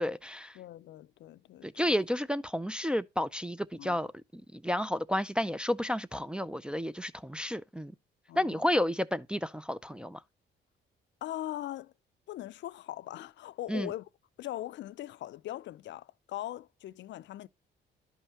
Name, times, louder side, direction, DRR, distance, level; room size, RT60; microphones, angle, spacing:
voice 1, 0.0-0.6 1.6-7.9 8.4-10.2 13.7-13.9, left 1 dB, 5° right, 0.3 m, -31 dB
voice 2, 0.5-1.8 3.8-4.0 8.3-8.7 11.2-11.9 12.3-14.1 14.4-17.5, left 13 dB, 65° left, 0.4 m, -40 dB
11.0 x 5.6 x 2.9 m
cardioid pair, 90°, 20 cm